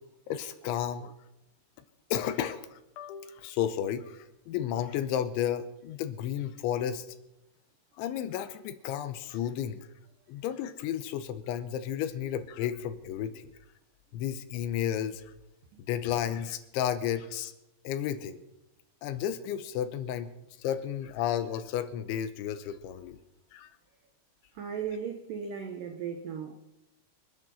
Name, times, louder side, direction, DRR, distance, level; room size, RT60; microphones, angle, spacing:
voice 1, 0.3-1.1 2.1-7.1 8.0-9.9 10.3-13.5 14.1-15.3 15.9-17.5 17.8-18.4 19.0-20.3 20.6-23.2 23.5-23.7, left 10 dB, 80° left, 3.1 m, -32 dB
voice 2, 24.5-26.6, right 7 dB, 80° right, 1.9 m, -36 dB
26.5 x 9.0 x 5.4 m
omnidirectional pair, 5.6 m